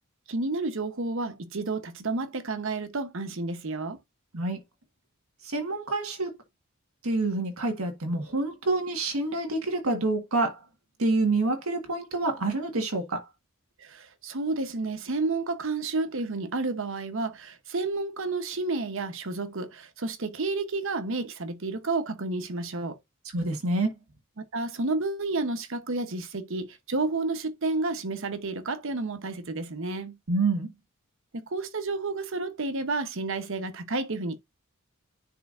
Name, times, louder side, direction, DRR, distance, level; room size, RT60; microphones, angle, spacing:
voice 1, 0.3-4.0 13.8-23.0 24.4-30.2 31.3-34.4, right 3 dB, 65° right, 1.0 m, -31 dB
voice 2, 5.4-6.3 7.0-10.6 11.0-13.2 23.3-23.9 30.3-30.7, right 2 dB, 90° right, 1.7 m, -27 dB
10.0 x 4.6 x 2.6 m
head